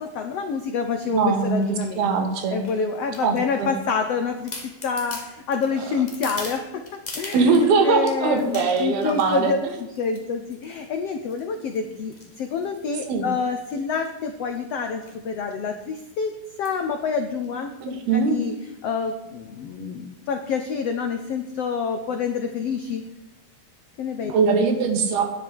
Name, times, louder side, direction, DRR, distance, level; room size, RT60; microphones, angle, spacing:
voice 1, 0.0-2.1 2.5-4.5 4.8-9.6 10.0-16.3 16.6-18.5 18.8-23.0 24.0-24.3, left 5 dB, 85° left, 6 dB, 1.3 m, -27 dB
voice 2, 1.1-2.6 3.2-3.7 5.8-5.9 7.3-9.5 13.1-13.3 17.8-18.4 24.3-25.3, right 4 dB, 85° right, 5 dB, 3.9 m, -21 dB
sound 1, 1.6-1.9 2.6-3.7 4.1-4.2 4.5-7.7 8.1-9.5 10.0-10.2 10.5-10.8 11.3-13.1 13.6-13.8 14.0-14.1 14.3-14.6 15.0-15.2 15.5-15.6 16.6-16.9 17.4-17.5, left 2 dB, 15° left, 1.5 m, -40 dB
10.5 x 8.1 x 9.8 m, 1.0 s
omnidirectional pair, 4.3 m